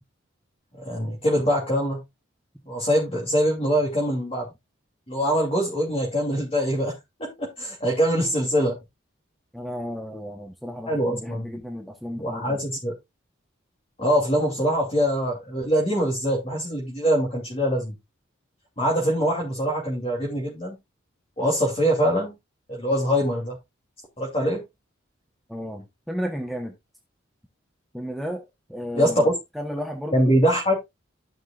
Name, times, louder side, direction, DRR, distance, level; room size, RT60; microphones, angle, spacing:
voice 1, 0.8-2.0 2.7-4.5 5.1-8.8 10.9-11.6 12.2-12.9 14.0-17.9 18.8-20.8 21.4-22.3 22.7-23.6 24.2-24.6 28.9-29.3 30.1-30.8, equal, 30° left, 2.8 m, -23 dB
voice 2, 9.5-12.6 25.5-26.7 27.9-30.3, equal, ahead, 1.0 m, -33 dB
14.5 x 6.0 x 2.4 m
head